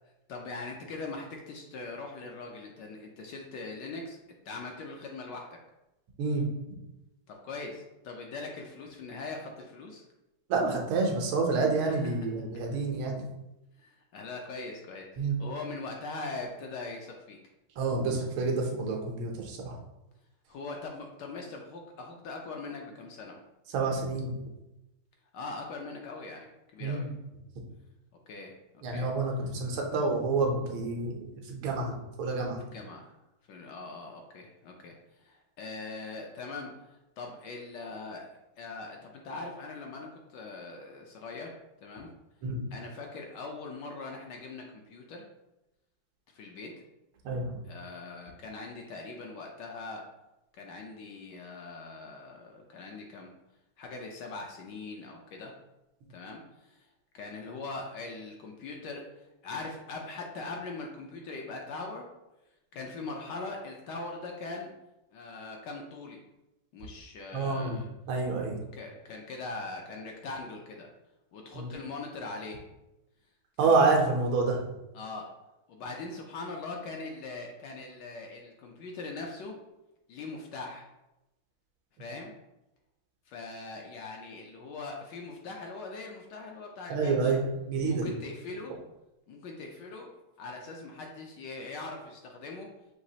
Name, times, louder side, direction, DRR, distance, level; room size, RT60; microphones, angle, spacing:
voice 1, 0.3-4.2 4.5-5.5 7.3-10.0 11.9-12.0 13.8-17.4 20.5-23.4 25.3-27.1 28.3-29.1 32.7-33.0 33.5-38.2 38.6-42.1 42.7-45.2 46.3-46.8 47.6-50.0 50.5-53.3 53.8-55.5 56.1-56.9 57.1-62.1 62.7-64.7 65.1-66.2 66.7-67.9 68.5-70.9 71.3-72.6 73.6-73.9 74.9-75.3 75.7-79.6 80.1-80.9 82.0-82.3 83.3-87.4 87.8-88.7 89.3-92.7, left 3 dB, 70° left, 1 dB, 1.1 m, -41 dB
voice 2, 10.5-13.2 15.2-15.3 17.8-19.8 23.7-24.3 26.8-27.1 28.8-32.7 42.4-42.6 47.2-47.6 67.3-67.8 68.1-68.6 71.5-71.7 73.6-74.6 86.9-88.1, right 3 dB, 80° right, 1 dB, 1.6 m, -28 dB
6.1 x 2.9 x 2.7 m, 0.95 s
omnidirectional pair, 2.2 m